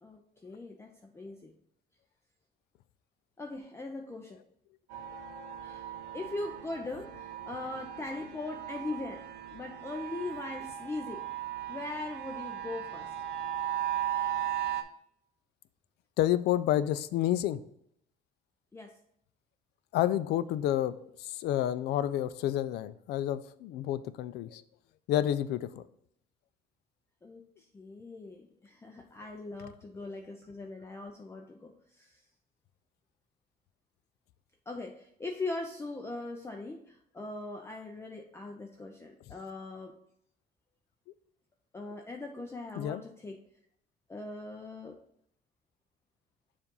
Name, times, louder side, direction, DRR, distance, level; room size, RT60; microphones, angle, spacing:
voice 1, 0.0-1.5 3.4-4.4 5.6-9.2 9.5-11.2 11.7-13.1 18.7-18.9 27.2-32.2 34.7-40.0 41.7-43.4 44.1-45.0, left 2 dB, 15° left, 2 dB, 0.5 m, -40 dB
sound 1, 4.9-14.8, right 12 dB, 90° right, 0.7 m, -37 dB
voice 2, 16.2-17.6 19.9-24.6 25.1-25.8 42.8-43.0, left 12 dB, 75° left, 14 dB, 0.4 m, -29 dB
7.0 x 2.5 x 5.3 m, 0.72 s
cardioid pair, 110°, 17 cm